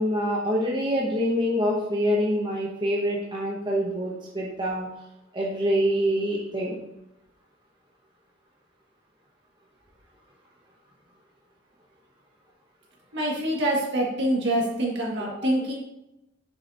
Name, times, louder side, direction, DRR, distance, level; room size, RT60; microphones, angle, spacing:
voice 1, 0.0-4.9 5.3-6.8 15.4-15.5, equal, 25° right, -3 dB, 0.9 m, -25 dB
voice 2, 13.1-15.7, right 1 dB, 60° right, -3 dB, 2.1 m, -25 dB
6.9 x 6.6 x 2.9 m, 0.88 s
head